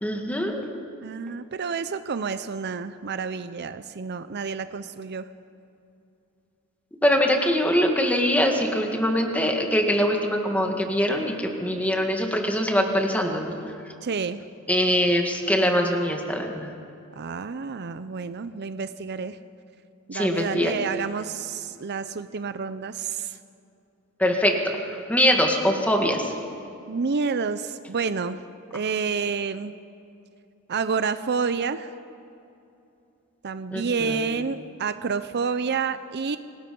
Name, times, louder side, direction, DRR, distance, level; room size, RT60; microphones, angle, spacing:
voice 1, 0.0-0.6 7.0-13.6 14.7-16.7 20.1-20.7 24.2-26.3 33.7-34.2, equal, 5° left, 3 dB, 2.0 m, -23 dB
voice 2, 1.0-5.3 14.0-14.4 17.2-19.4 20.1-23.4 26.9-28.4 28.7-29.7 30.7-31.9 33.4-36.4, right 5 dB, 50° right, 12 dB, 0.6 m, -29 dB
26.0 x 19.0 x 5.4 m, 2.7 s
head